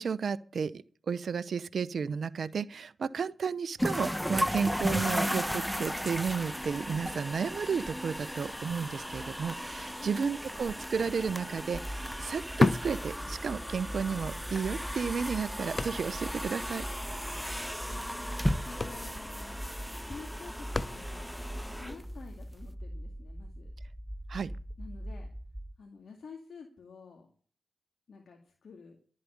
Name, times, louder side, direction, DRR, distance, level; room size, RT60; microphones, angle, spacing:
voice 1, 0.0-16.8 24.3-24.5, right 6 dB, 70° right, 0.7 m, -33 dB
sound 1, 3.8-22.7, equal, ahead, 1.2 m, -36 dB
sound 2, 11.8-25.7, equal, 15° right, 1.4 m, -42 dB
sound 3, 12.5-13.9 14.2-14.3 14.9-16.4 16.7-16.8 17.0-17.3 18.2-18.3 18.6-21.4 22.0-22.1, left 3 dB, 45° left, 0.7 m, -32 dB
voice 2, 17.8-18.3 18.6-19.6 20.0-21.4 21.8-23.7 24.8-25.3 25.8-27.3 28.1-29.0, left 5 dB, 70° left, 2.2 m, -49 dB
12.0 x 7.6 x 9.8 m
supercardioid pair, 40°, 0 cm